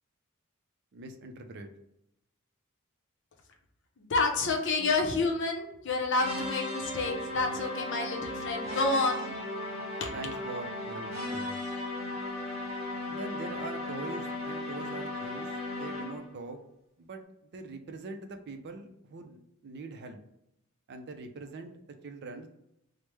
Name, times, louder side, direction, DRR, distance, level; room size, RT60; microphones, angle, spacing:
voice 1, 0.9-1.7 4.8-4.9 10.1-11.6 13.1-16.6 17.0-20.2 20.9-21.7 22.0-22.5, right 3 dB, 50° right, 6 dB, 0.4 m, -43 dB
voice 2, 4.0-9.3 10.0-10.1, left 3 dB, 60° left, 3 dB, 0.6 m, -29 dB
sound 1, 6.2-16.3, left 1 dB, 30° right, 0.9 m, -36 dB
3.1 x 2.0 x 3.2 m, 0.81 s
head